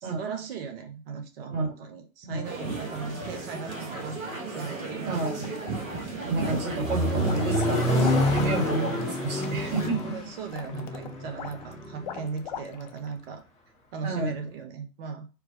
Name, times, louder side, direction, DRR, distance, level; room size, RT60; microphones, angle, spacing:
voice 1, 0.0-5.1 10.0-13.4 13.9-15.3, right 5 dB, 45° right, 5 dB, 1.0 m, -37 dB
sound 1, 2.4-9.9, right 3 dB, 70° right, 1.4 m, -35 dB
voice 2, 5.0-5.6 6.2-10.1 14.0-14.3, right 3 dB, 25° right, 2 dB, 1.3 m, -30 dB
sound 2, 5.2-6.0 6.4-13.1, left 8 dB, 35° left, 0.4 m, -40 dB
Accelerating revving vroom, 6.2-12.3, left 1 dB, 15° left, 1.0 m, -28 dB
4.6 x 2.2 x 3.9 m, 0.32 s
figure-of-eight pair, 100°, 42 cm